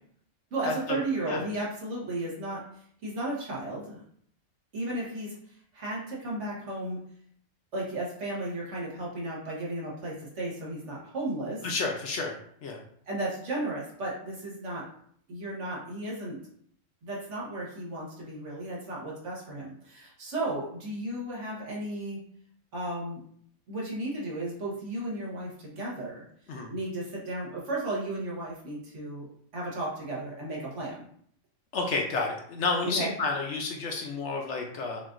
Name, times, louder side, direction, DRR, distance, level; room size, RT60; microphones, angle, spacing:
voice 1, 0.5-4.0 4.7-7.0 7.7-11.7 13.1-14.8 15.3-16.4 17.0-22.2 22.7-23.2 23.7-26.2 26.7-29.3 29.5-31.1 32.8-33.1, right 2 dB, 60° right, -4 dB, 1.4 m, -34 dB
voice 2, 11.6-12.3 12.6-12.8 26.5-26.7 31.7-35.0, left 3 dB, 65° left, 1 dB, 0.8 m, -30 dB
5.4 x 2.5 x 2.5 m, 0.64 s
omnidirectional pair, 1.4 m